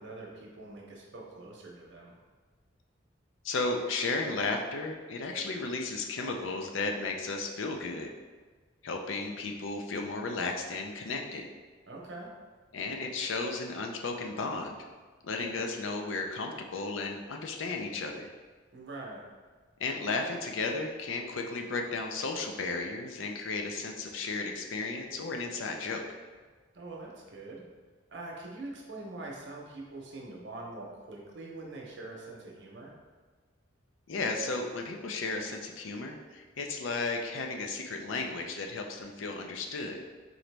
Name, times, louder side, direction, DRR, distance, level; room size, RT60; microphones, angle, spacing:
voice 1, 0.0-2.1 11.9-12.3 18.7-19.2 26.7-27.6 28.1-32.9, right 2 dB, 65° right, -1 dB, 0.8 m, -44 dB
voice 2, 3.4-8.1 8.8-11.5 12.7-14.8 15.2-18.3 19.8-26.2 34.1-40.0, left 3 dB, 85° left, 3 dB, 0.5 m, -34 dB
3.9 x 2.9 x 3.3 m, 1.4 s
head